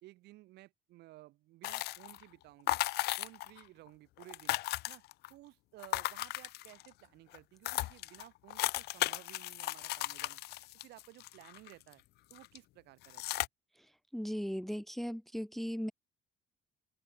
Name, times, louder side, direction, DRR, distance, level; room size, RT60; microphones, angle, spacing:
voice 1, 0.0-2.8 3.2-4.6 4.9-5.0 5.3-10.4 10.8-12.0 12.3-13.2, right 18 dB, 85° right, 2.1 m, -56 dB
sound 1, 1.6-2.2 2.7-3.6 3.9-4.0 4.2-5.3 5.8-6.9 7.3-7.4 7.6-11.9 12.3-12.6 13.0-13.5, left 18 dB, 75° left, 0.5 m, -36 dB
voice 2, 14.1-15.9, equal, ahead, 0.7 m, -37 dB
cardioid pair, 110°, 17 cm